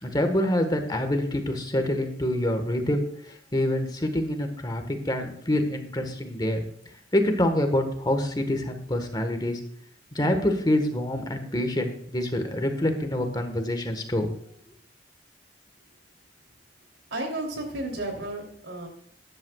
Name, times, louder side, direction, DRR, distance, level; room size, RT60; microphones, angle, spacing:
voice 1, 0.0-3.0 3.5-6.6 7.1-9.6 10.1-14.3, left 1 dB, 25° left, 6 dB, 1.4 m, -26 dB
voice 2, 17.1-18.9, right 2 dB, 90° right, 3 dB, 3.0 m, -32 dB
14.0 x 10.5 x 2.3 m, 0.66 s
head